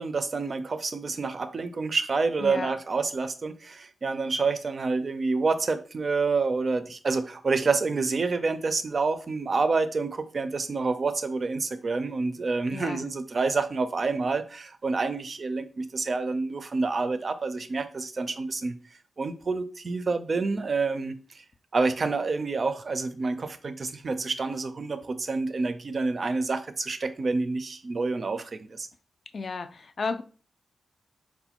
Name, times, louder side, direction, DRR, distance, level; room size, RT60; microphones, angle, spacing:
voice 1, 0.0-18.7 19.2-21.1 21.7-28.9, right 4 dB, 45° right, 0.4 m, -28 dB
voice 2, 2.4-2.7 12.7-13.1 29.3-30.2, left 4 dB, 50° left, 0.3 m, -33 dB
4.1 x 2.1 x 2.9 m
wide cardioid pair, 105°, 0 cm